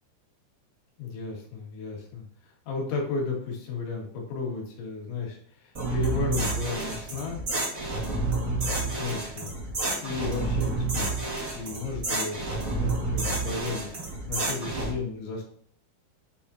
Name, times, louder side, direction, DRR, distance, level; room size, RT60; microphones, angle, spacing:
voice 1, 1.0-7.4 8.1-9.5 10.0-11.2 11.5-15.4, left 4 dB, 80° left, -1 dB, 4.3 m, -34 dB
sound 1, 5.7-14.9, right 2 dB, 35° right, 1.3 m, -29 dB
9.1 x 5.6 x 2.8 m, 0.62 s
omnidirectional pair, 5.3 m